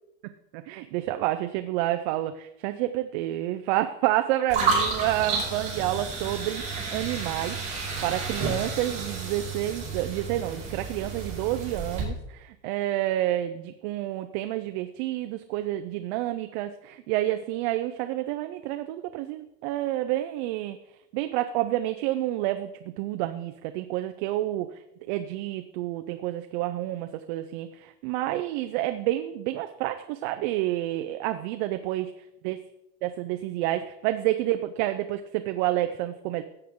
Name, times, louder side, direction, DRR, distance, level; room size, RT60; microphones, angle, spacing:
voice 1, 0.5-20.8 21.1-24.8 25.1-32.1 32.4-32.6 33.0-36.4, right 14 dB, 55° right, 8 dB, 0.5 m, -29 dB
sound 1, 4.5-12.0, right 4 dB, 20° right, 4.2 m, -31 dB
14.5 x 8.0 x 3.7 m, 0.86 s
cardioid pair, 175°, 32 cm